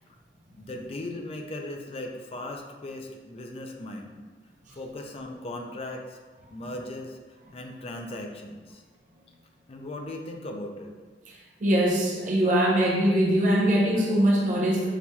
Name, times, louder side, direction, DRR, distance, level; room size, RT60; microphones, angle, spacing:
voice 1, 0.5-4.1 4.7-6.2 6.5-7.2 7.5-8.8 9.7-10.9, left 1 dB, 35° left, 3 dB, 0.4 m, -38 dB
voice 2, 11.3-14.9, right 1 dB, 45° right, -3 dB, 0.6 m, -22 dB
5.9 x 2.7 x 2.3 m, 1.3 s
head